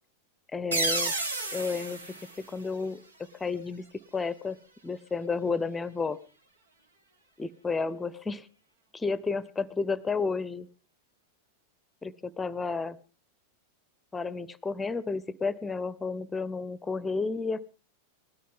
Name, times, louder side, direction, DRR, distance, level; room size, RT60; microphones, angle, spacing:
voice 1, 0.5-1.1 1.5-3.0 3.4-3.8 4.1-4.6 4.8-6.2 7.4-8.5 9.0-10.7 12.0-13.0 14.1-17.6, left 4 dB, 10° left, 20 dB, 0.8 m, -31 dB
sound 1, 0.7-3.3, right 2 dB, 75° right, 1.8 m, -32 dB
20.0 x 13.5 x 3.7 m, 0.36 s
figure-of-eight pair, 90°, 0 cm